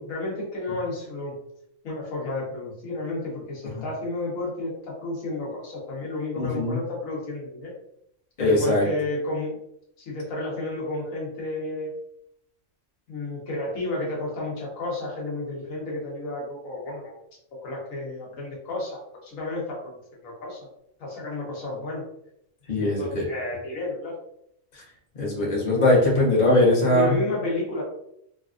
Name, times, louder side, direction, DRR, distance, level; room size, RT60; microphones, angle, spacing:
voice 1, 0.0-1.3 1.8-7.7 8.4-9.6 10.0-11.9 13.1-17.1 17.5-19.9 20.2-20.7 21.0-22.0 22.8-24.1 26.3-26.5 26.8-27.8, left 2 dB, 75° left, -3 dB, 1.3 m, -32 dB
voice 2, 6.4-6.8 8.4-8.9 22.7-23.2 25.2-27.1, left 1 dB, 35° left, -4 dB, 0.9 m, -21 dB
3.2 x 2.4 x 2.4 m, 0.75 s
omnidirectional pair, 1.4 m